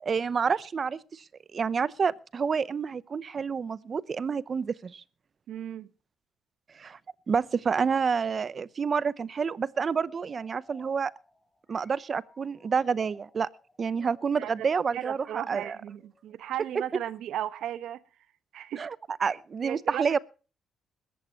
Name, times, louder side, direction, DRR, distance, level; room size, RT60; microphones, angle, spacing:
voice 1, 0.0-1.2 1.5-5.0 6.7-7.0 7.3-11.1 11.7-13.5 13.8-15.2 15.5-15.8 18.8-18.9 19.2-20.2, right 6 dB, 45° right, 0.7 m, -28 dB
voice 2, 5.5-5.9 14.4-14.7 14.9-18.0 18.5-18.8 19.6-20.0, right 11 dB, 80° right, 1.1 m, -35 dB
sound 1, 9.9-16.6, left 2 dB, 15° left, 6.2 m, -59 dB
21.5 x 14.5 x 3.0 m
cardioid pair, 90°, 0 cm